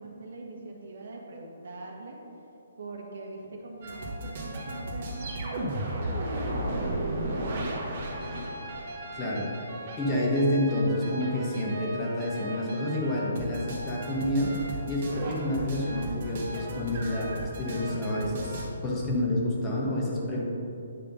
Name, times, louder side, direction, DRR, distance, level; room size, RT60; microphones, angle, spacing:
voice 1, 0.0-2.2 2.8-8.1, right 2 dB, 65° right, 0 dB, 1.5 m, -42 dB
sound 1, 3.8-18.7, right 1 dB, 45° right, 1.6 m, -35 dB
voice 2, 9.1-9.5 10.0-20.4, left 1 dB, 15° left, -4 dB, 1.1 m, -29 dB
9.3 x 3.6 x 5.3 m, 2.7 s
hypercardioid pair, 165°, 0 cm